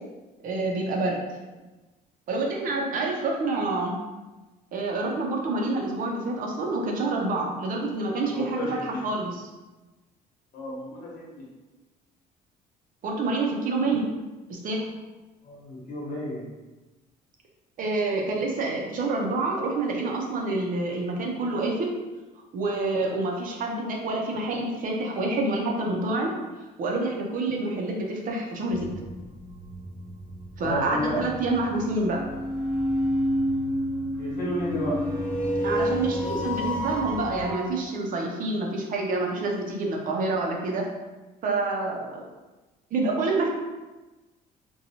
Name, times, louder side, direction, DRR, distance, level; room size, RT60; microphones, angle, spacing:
voice 1, 0.4-1.2 2.3-4.0 4.7-9.3 13.0-14.0 14.5-14.8 17.8-21.9 22.5-26.3 26.8-28.9 30.6-32.2 35.6-40.8 41.4-42.3 42.9-43.5, right 2 dB, 55° right, 0 dB, 0.6 m, -27 dB
voice 2, 8.2-9.0 10.5-11.4 15.4-16.4 30.6-31.2 34.2-35.0, equal, 55° left, -5 dB, 1.1 m, -32 dB
sound 1, 28.7-37.5, equal, 5° left, 0.7 m, -30 dB
2.8 x 2.2 x 2.7 m, 1.2 s
cardioid pair, 110°, 17 cm